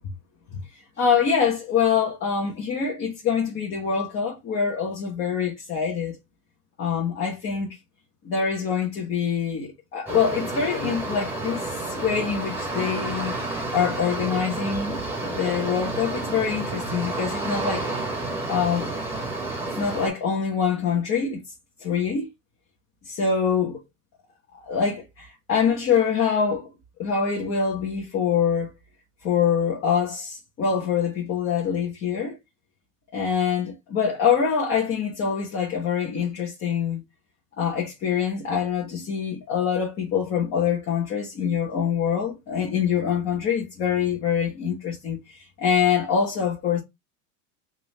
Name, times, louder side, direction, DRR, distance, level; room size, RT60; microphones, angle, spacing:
voice 1, 1.0-6.2 6.8-7.8 8.2-13.3 13.7-17.9 18.5-18.9 19.8-21.4 21.8-22.3 23.0-23.8 24.6-26.7 27.0-28.7 29.2-32.4 33.1-37.0 37.6-46.8, left 7 dB, 25° left, 1.1 m, -25 dB
sound 1, 10.1-20.1, right 2 dB, 5° right, 1.2 m, -30 dB
3.9 x 2.7 x 3.1 m
supercardioid pair, 140°, 47 cm